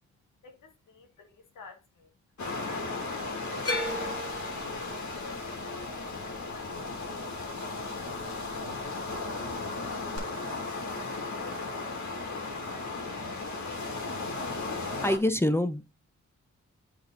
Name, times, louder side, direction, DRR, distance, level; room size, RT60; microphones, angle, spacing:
voice 1, 0.4-2.1 2.7-8.2 8.8-10.5, left 4 dB, 85° left, 1.4 m, -52 dB
sound 1, 2.4-15.2, left 3 dB, 70° left, 1.7 m, -35 dB
sound 2, 3.6-7.8 8.1-8.8 10.2-10.3, left 1 dB, 50° left, 2.0 m, -37 dB
voice 2, 15.0-15.9, left 1 dB, 10° left, 0.7 m, -25 dB
7.9 x 3.4 x 4.1 m
supercardioid pair, 40°, 30 cm